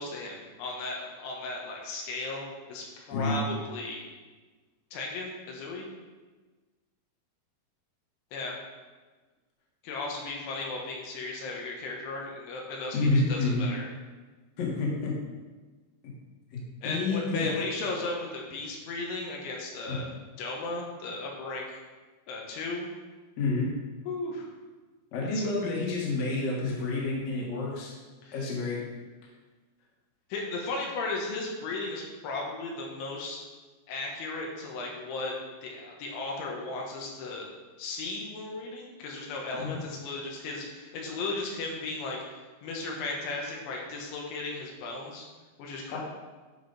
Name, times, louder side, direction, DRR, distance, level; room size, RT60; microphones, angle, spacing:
voice 1, 0.0-4.0 4.9-5.9 8.3-8.6 9.8-13.9 16.8-20.1 20.4-21.8 22.3-22.9 24.1-24.5 25.3-25.5 28.2-28.4 30.3-33.4 33.9-35.3 35.6-37.5 37.8-45.3 45.6-46.0, left 3 dB, 85° left, -1 dB, 3.7 m, -36 dB
voice 2, 12.9-13.7 14.6-15.1 16.0-16.1 16.5-16.6 16.8-17.6 19.9-20.0 23.4-23.7 25.1-27.9 28.3-28.8 39.5-39.8 45.9-46.0, left 3 dB, 50° left, -4 dB, 2.4 m, -29 dB
11.0 x 5.1 x 4.2 m, 1.3 s
omnidirectional pair, 5.3 m